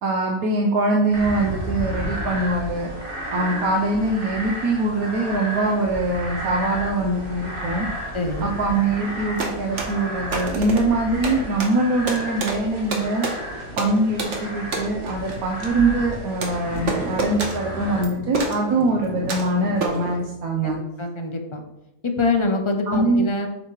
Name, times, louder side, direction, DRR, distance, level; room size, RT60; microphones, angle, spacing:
voice 1, 0.0-2.9 3.3-7.9 8.4-13.3 13.7-20.8 22.9-23.3, right 2 dB, 80° right, 0 dB, 1.3 m, -23 dB
sound 1, 1.1-18.0, equal, 35° right, 2.2 m, -33 dB
voice 2, 8.1-8.6 20.6-21.6 22.0-23.5, left 3 dB, 30° left, 4 dB, 0.5 m, -25 dB
sound 2, 9.1-20.2, right 3 dB, 55° right, 1.4 m, -30 dB
7.6 x 6.6 x 3.2 m, 0.92 s
omnidirectional pair, 1.5 m